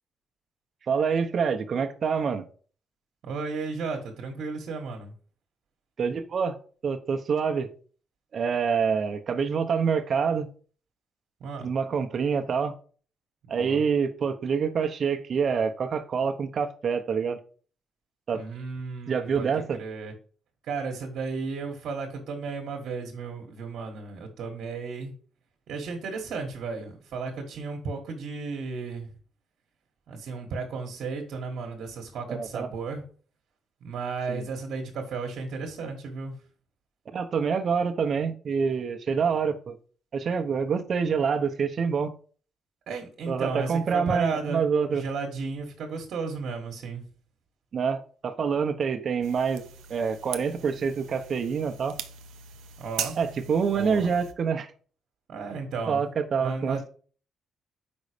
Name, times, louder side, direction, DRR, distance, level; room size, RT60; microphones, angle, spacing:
voice 1, 0.9-2.4 6.0-6.6 6.8-7.7 8.3-10.5 11.6-12.8 13.5-17.4 18.3-18.4 19.1-19.8 32.3-32.7 34.3-34.4 37.1-39.8 40.1-42.1 43.3-45.0 47.7-49.6 49.9-52.0 53.2-54.7 55.9-56.9, right 6 dB, 50° right, 0.9 m, -26 dB
voice 2, 3.2-5.1 11.4-11.7 13.5-13.8 18.3-20.1 20.6-25.1 25.7-29.1 30.1-33.0 33.8-36.4 42.9-47.0 52.8-53.2 53.7-54.1 55.3-56.0 56.4-56.9, right 4 dB, 70° right, 1.3 m, -34 dB
sound 1, 49.2-54.3, right 8 dB, 85° right, 0.5 m, -40 dB
5.3 x 4.0 x 5.0 m
cardioid pair, 90°, 0 cm